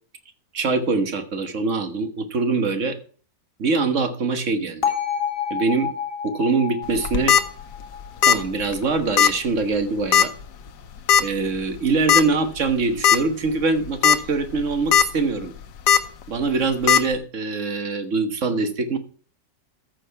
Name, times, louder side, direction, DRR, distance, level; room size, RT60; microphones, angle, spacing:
voice 1, 0.5-3.0 3.6-4.9 5.5-5.9 6.2-7.4 8.2-10.3 11.2-15.5 16.3-19.0, right 4 dB, 45° right, 8 dB, 1.5 m, -23 dB
Bell, 4.8-8.9, left 8 dB, 30° left, 1.8 m, -29 dB
sound 1, 7.0-7.4 8.2-8.5 8.7-8.8 9.2-9.3 10.1-10.4 11.1-11.2 12.1-12.2 12.7-12.8 13.0-13.2 13.8-14.2 14.6-15.0 15.9-16.0 16.9-17.0, left 9 dB, 75° left, 1.4 m, -15 dB
14.0 x 6.6 x 4.6 m, 0.43 s
omnidirectional pair, 1.9 m